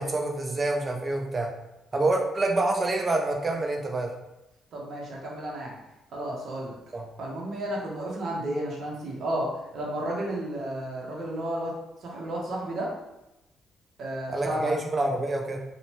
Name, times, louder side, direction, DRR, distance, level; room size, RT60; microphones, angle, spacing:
voice 1, 0.0-1.5 1.9-4.1 6.9-7.1 14.3-15.6, right 2 dB, 30° right, 1 dB, 0.5 m, -27 dB
voice 2, 4.7-5.7 6.1-6.7 7.2-11.7 12.0-12.9 14.0-14.7, right 1 dB, 60° right, -3 dB, 0.8 m, -32 dB
2.7 x 2.1 x 3.0 m, 0.93 s
cardioid pair, 90°, 0 cm